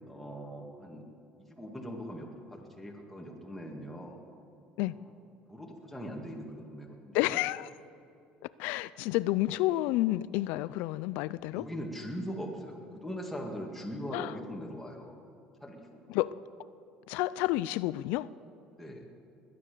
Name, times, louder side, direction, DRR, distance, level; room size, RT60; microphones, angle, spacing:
voice 1, 0.1-1.0 1.5-4.2 5.5-7.4 11.5-15.2 15.6-16.0 18.7-19.0, equal, 5° left, -1 dB, 2.0 m, -41 dB
voice 2, 7.1-7.7 8.6-11.6 14.1-14.3 16.1-16.4 17.1-18.3, left 17 dB, 80° left, 18 dB, 0.4 m, -30 dB
20.0 x 9.9 x 6.8 m, 2.6 s
cardioid pair, 115°, 3 cm